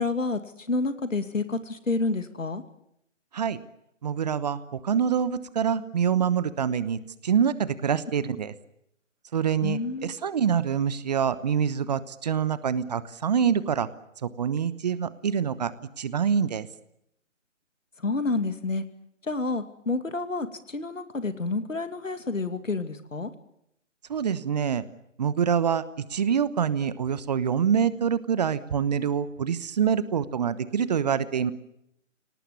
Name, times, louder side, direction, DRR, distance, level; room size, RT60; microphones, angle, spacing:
voice 1, 0.0-2.6 9.6-10.1 18.0-18.8 19.3-23.3, left 3 dB, 85° left, 10 dB, 2.5 m, -29 dB
voice 2, 4.0-8.5 9.3-13.9 14.2-15.7 16.0-16.7 24.1-24.8 25.2-31.5, right 7 dB, 35° right, 16 dB, 1.0 m, -26 dB
26.5 x 18.5 x 9.7 m, 0.79 s
figure-of-eight pair, 150°, 38 cm